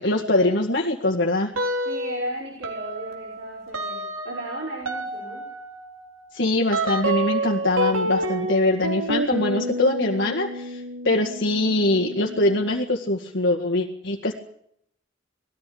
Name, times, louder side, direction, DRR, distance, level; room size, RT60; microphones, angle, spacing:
voice 1, 0.0-1.5 6.3-14.3, left 2 dB, 55° left, -1 dB, 2.0 m, -23 dB
sound 1, 1.5-2.3 2.6-13.0, right 1 dB, 80° right, 3.6 m, -29 dB
voice 2, 1.9-5.5, right 1 dB, 60° right, -3 dB, 5.5 m, -35 dB
20.5 x 14.5 x 8.8 m, 0.69 s
head